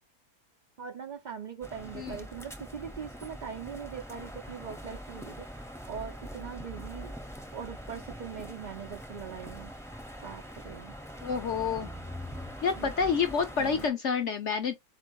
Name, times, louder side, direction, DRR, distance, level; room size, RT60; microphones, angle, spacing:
voice 1, 0.8-7.1 7.5-9.7 10.2-11.0 12.8-13.2 13.6-13.9, right 7 dB, 75° right, 0.4 m, -41 dB
sound 1, 1.6-13.9, equal, 5° left, 0.6 m, -43 dB
voice 2, 11.2-11.9 12.6-14.8, left 6 dB, 60° left, 0.8 m, -28 dB
4.4 x 2.8 x 2.9 m
omnidirectional pair, 1.7 m